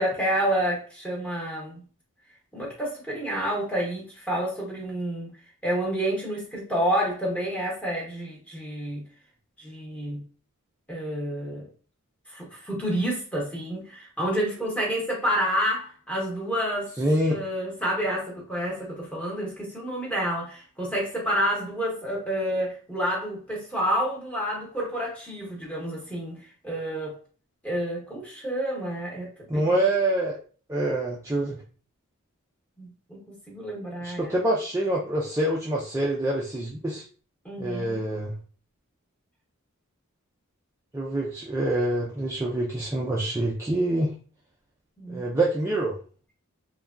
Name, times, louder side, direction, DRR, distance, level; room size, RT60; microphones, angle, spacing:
voice 1, 0.0-1.8 2.5-5.3 5.6-9.0 9.6-10.2 10.9-11.7 12.3-16.9 17.3-26.4 26.6-27.1 27.6-29.6 32.8-34.3 37.4-38.0 45.0-45.3, equal, 5° left, -3 dB, 0.9 m, -29 dB
voice 2, 17.0-17.4 29.5-30.4 30.7-31.6 34.0-37.0 37.6-38.3 40.9-44.1 45.1-46.0, right 1 dB, 10° right, -4 dB, 0.3 m, -26 dB
3.2 x 2.2 x 2.4 m, 0.39 s
head